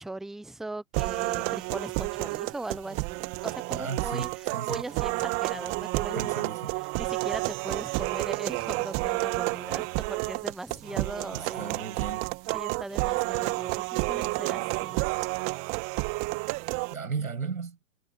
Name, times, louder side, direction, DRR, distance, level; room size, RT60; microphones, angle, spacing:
voice 1, 0.0-4.3 4.7-6.4 7.0-11.9 12.5-15.1, right 2 dB, ahead, 0.7 m, -39 dB
sound 1, 0.9-16.9, right 27 dB, 35° right, 1.8 m, -30 dB
voice 2, 3.7-4.9 6.1-6.8 11.3-12.3 16.9-17.8, right 5 dB, 85° right, 7.8 m, -35 dB
hypercardioid pair, 125°, 41 cm